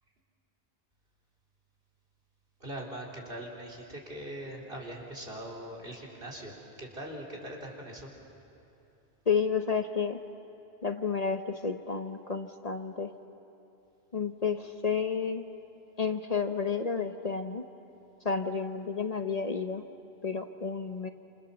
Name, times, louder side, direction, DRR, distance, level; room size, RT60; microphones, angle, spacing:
voice 1, 2.6-6.5 6.8-8.1, right 1 dB, 60° right, -2 dB, 4.3 m, -41 dB
voice 2, 9.3-10.2 10.8-13.1 14.1-15.5 16.0-17.7 18.2-19.8 20.2-21.1, left 5 dB, 40° left, 7 dB, 1.0 m, -31 dB
28.0 x 27.5 x 7.1 m, 3.0 s
omnidirectional pair, 1.1 m